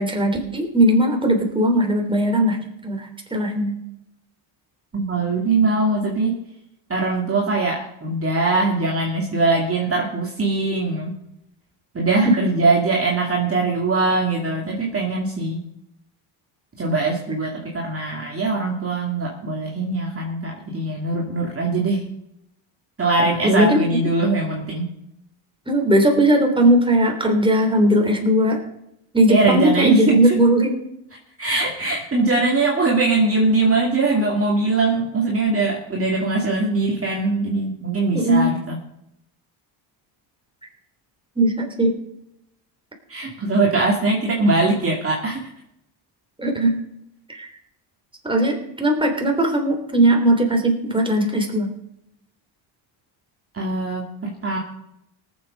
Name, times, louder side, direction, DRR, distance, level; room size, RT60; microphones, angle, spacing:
voice 1, 0.0-2.6 2.8-3.7 12.2-12.4 23.4-24.0 25.7-28.6 29.1-30.8 38.1-38.5 41.4-42.0 46.4-46.8 47.3-47.5 48.2-51.7, right 1 dB, 10° right, 1 dB, 3.4 m, -18 dB
voice 2, 4.9-6.4 6.9-11.2 11.9-15.6 16.8-22.1 23.0-24.9 29.3-30.4 31.4-38.8 43.1-45.5 53.5-54.6, right 3 dB, 25° right, -1 dB, 2.4 m, -21 dB
18.5 x 7.7 x 5.3 m, 0.82 s
cardioid pair, 85°, 49 cm